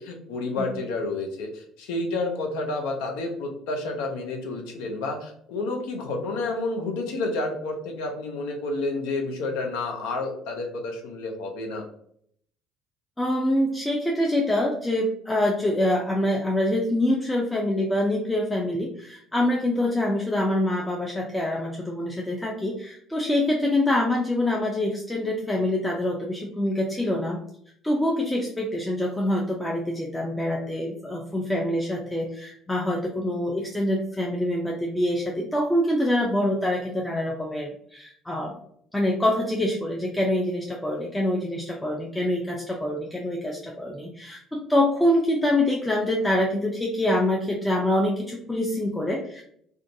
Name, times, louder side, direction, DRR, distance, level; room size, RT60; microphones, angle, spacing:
voice 1, 0.0-11.9, left 2 dB, 75° left, 3 dB, 0.5 m, -30 dB
voice 2, 13.2-27.4 27.8-38.6 38.9-49.4, left 1 dB, 10° left, -1 dB, 0.4 m, -25 dB
2.4 x 2.2 x 2.6 m, 0.66 s
hypercardioid pair, 65°, 0 cm